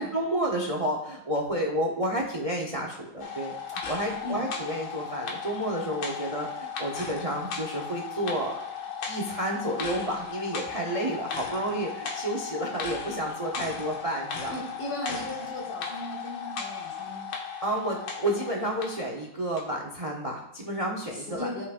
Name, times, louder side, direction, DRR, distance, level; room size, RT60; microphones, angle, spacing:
voice 1, 0.0-8.6 9.0-14.6 17.6-21.5, right 1 dB, 40° right, 1 dB, 0.5 m, -30 dB
sound 1, 3.2-19.1 19.6-19.7, left 6 dB, 90° left, 1.9 m, -36 dB
voice 2, 14.5-17.3 21.1-21.7, left 1 dB, 65° left, -6 dB, 2.9 m, -36 dB
11.0 x 5.5 x 2.5 m, 0.86 s
omnidirectional pair, 2.1 m